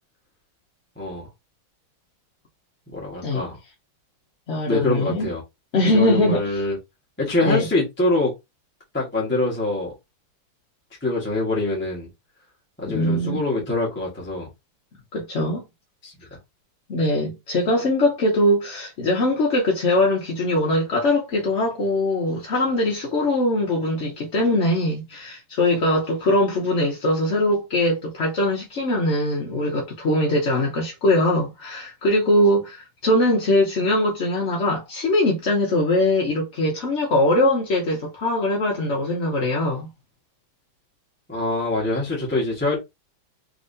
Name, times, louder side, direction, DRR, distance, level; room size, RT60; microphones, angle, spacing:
voice 1, 1.0-1.3 2.9-3.6 4.7-5.4 5.9-6.8 7.2-8.3 8.9-9.9 11.0-12.1 12.8-14.5 16.0-16.1 41.3-42.8, left 2 dB, 5° left, 1.0 m, -24 dB
voice 2, 4.5-5.3 5.7-6.6 7.4-7.7 12.9-13.4 15.1-15.6 16.9-39.9, left 1 dB, 50° left, 0.8 m, -21 dB
3.7 x 3.2 x 2.6 m
omnidirectional pair, 2.2 m